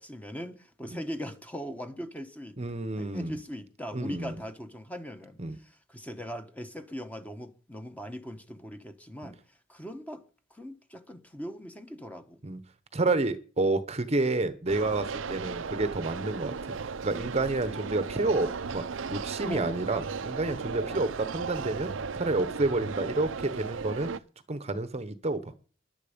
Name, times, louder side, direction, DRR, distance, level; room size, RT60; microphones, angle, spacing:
voice 1, 0.0-2.6 3.0-9.4 9.7-10.2 10.5-12.4 17.4-17.8 19.4-19.7 20.8-21.0, equal, 10° left, 1.1 m, -40 dB
voice 2, 2.6-3.4 3.9-4.3 5.4-5.6 9.2-9.3 12.4-12.6 12.9-16.7 17.0-24.1 24.5-25.4, right 2 dB, 35° right, 0.9 m, -29 dB
sound 1, 14.7-24.2, right 5 dB, 80° right, 0.6 m, -36 dB
14.0 x 11.0 x 5.1 m
head